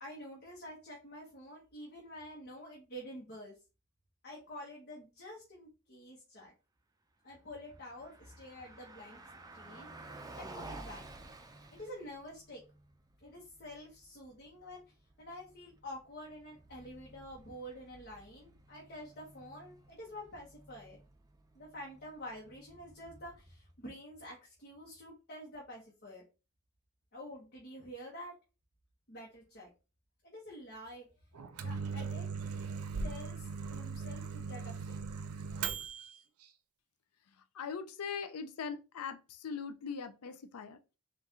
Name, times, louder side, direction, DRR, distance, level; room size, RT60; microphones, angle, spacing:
voice 1, 0.0-3.6 4.2-6.5 7.2-9.2 9.5-11.0 11.7-12.6 13.2-14.8 15.2-21.0 21.5-26.2 27.1-28.3 29.1-29.7 30.2-31.1 31.6-32.2 33.0-35.0, equal, 45° left, 1.1 m, -48 dB
Car passing by, 7.6-23.7, right 2 dB, 15° right, 0.5 m, -54 dB
Microwave oven, 31.3-36.2, right 5 dB, 75° right, 0.5 m, -39 dB
voice 2, 37.5-41.0, left 6 dB, 80° left, 0.5 m, -41 dB
4.1 x 2.5 x 3.6 m
head